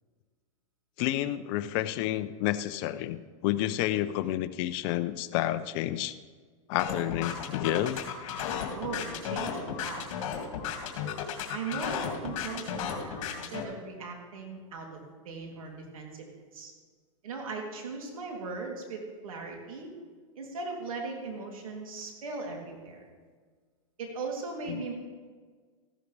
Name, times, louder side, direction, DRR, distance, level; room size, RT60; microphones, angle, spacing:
voice 1, 1.0-6.1 6.7-8.0 24.7-24.8, left 13 dB, 45° left, 11 dB, 0.7 m, -30 dB
sound 1, 6.8-13.6, left 7 dB, 65° left, 2.4 m, -34 dB
voice 2, 8.7-10.1 11.5-16.3 16.5-16.7 17.2-19.9 20.3-23.0 24.0-24.9, right 4 dB, 85° right, 0 dB, 3.1 m, -38 dB
14.5 x 12.5 x 3.4 m, 1.5 s
hypercardioid pair, 135°, 17 cm